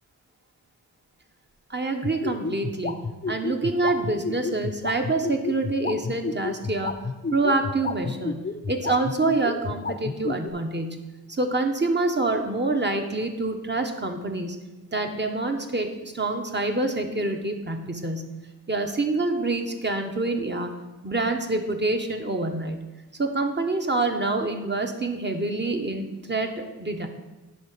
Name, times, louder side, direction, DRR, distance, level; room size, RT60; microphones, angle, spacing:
voice 1, 1.7-6.9 7.3-11.0 11.4-14.6 14.9-18.3 18.7-20.7 21.0-22.8 23.2-27.1, right 2 dB, 30° right, 4 dB, 1.2 m, -26 dB
sound 1, 2.0-10.5, left 4 dB, 25° left, 0.6 m, -29 dB
10.5 x 3.8 x 6.1 m, 1.1 s
cardioid pair, 45°, 38 cm